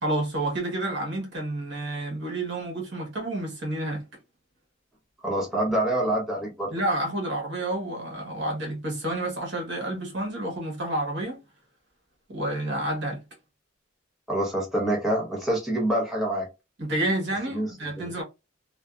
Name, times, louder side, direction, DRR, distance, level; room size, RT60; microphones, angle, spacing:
voice 1, 0.0-4.0 6.7-11.4 12.3-13.2 16.8-18.2, right 1 dB, 60° right, 1.1 m, -29 dB
voice 2, 5.2-6.7 14.3-16.5 17.5-17.7 18.0-18.2, right 1 dB, ahead, 0.8 m, -26 dB
2.5 x 2.3 x 2.3 m
head